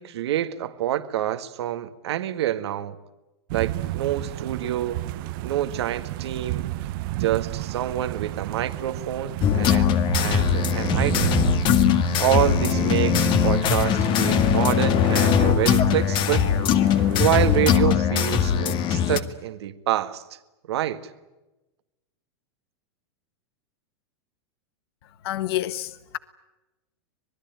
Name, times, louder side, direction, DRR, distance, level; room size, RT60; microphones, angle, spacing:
voice 1, 0.0-3.0 3.5-5.1 5.4-6.7 7.2-11.4 12.2-16.5 17.2-20.4 20.7-21.0, right 12 dB, 75° right, 1.8 m, -27 dB
sound 1, 3.5-17.8, right 16 dB, 55° right, 1.0 m, -32 dB
sound 2, 9.4-19.2, left 8 dB, 35° left, 2.0 m, -21 dB
voice 2, 25.2-26.2, left 14 dB, 65° left, 1.3 m, -28 dB
26.0 x 20.5 x 9.2 m
hypercardioid pair, 135°, 14 cm